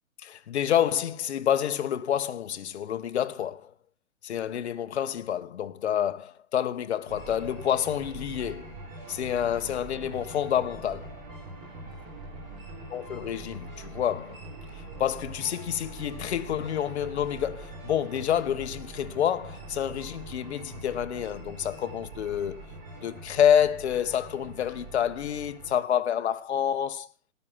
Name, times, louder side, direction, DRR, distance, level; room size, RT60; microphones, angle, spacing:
voice 1, 0.2-3.7 4.2-8.7 9.1-11.2 12.9-14.4 15.0-22.6 23.0-27.1, left 9 dB, 50° left, 1.0 m, -28 dB
sound 1, 7.1-25.7, right 2 dB, 25° right, 3.9 m, -43 dB
12.5 x 9.8 x 5.8 m
hypercardioid pair, 170°, 42 cm